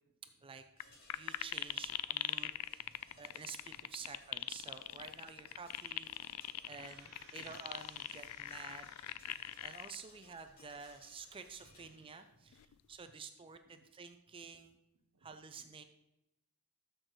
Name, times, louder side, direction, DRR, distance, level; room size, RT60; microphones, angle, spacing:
sound 1, 0.8-0.9 1.1-10.0 10.6-10.7 12.5-12.9, left 14 dB, 80° left, 0.3 m, -40 dB
sound 2, 0.8-11.8, left 2 dB, 40° left, 3.1 m, -63 dB
voice 1, 1.1-6.1 6.7-8.8 9.6-14.8 15.2-15.8, right 5 dB, 25° right, 8 dB, 0.4 m, -50 dB
voice 2, 2.8-3.4 3.7-4.2 4.8-5.2 6.3-6.4 7.4-7.5 8.8-9.6 10.1-10.2 11.6-12.0 12.4-12.5 13.0-13.1 13.4-13.5 13.7-13.8 14.9-15.7, right 2 dB, 85° right, 7 dB, 1.0 m, -69 dB
sound 3, 6.6-10.0 10.5-10.6, right 3 dB, 70° right, 3.3 m, -62 dB
12.5 x 6.5 x 3.1 m, 0.90 s
head